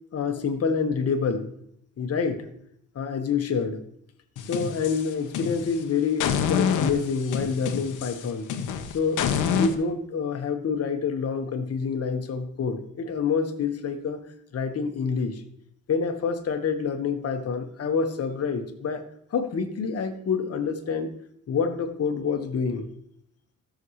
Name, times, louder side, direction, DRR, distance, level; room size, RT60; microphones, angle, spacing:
voice 1, 0.1-1.5 2.0-2.5 2.9-3.8 4.5-8.5 8.9-14.2 14.5-15.4 15.9-19.0 19.3-21.1 21.5-22.9, left 5 dB, 50° left, 6 dB, 1.4 m, -27 dB
sound 1, 4.4-5.8 6.2-9.7, left 7 dB, 85° left, 1.1 m, -27 dB
16.5 x 6.5 x 3.2 m, 0.71 s
cardioid pair, 90°, 30 cm